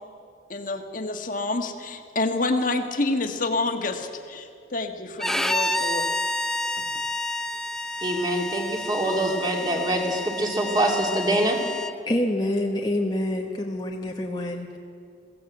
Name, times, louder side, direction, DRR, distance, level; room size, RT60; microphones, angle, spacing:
voice 1, 0.5-6.1 6.8-6.9, left 2 dB, 50° left, 5 dB, 1.5 m, -28 dB
Bowed string instrument, 5.2-11.9, left 1 dB, 5° left, 0.5 m, -29 dB
voice 2, 8.0-11.6, right 1 dB, 25° right, 0 dB, 2.8 m, -24 dB
voice 3, 12.1-14.8, left 1 dB, 25° left, 0 dB, 1.0 m, -27 dB
22.0 x 16.5 x 7.9 m, 2.4 s
head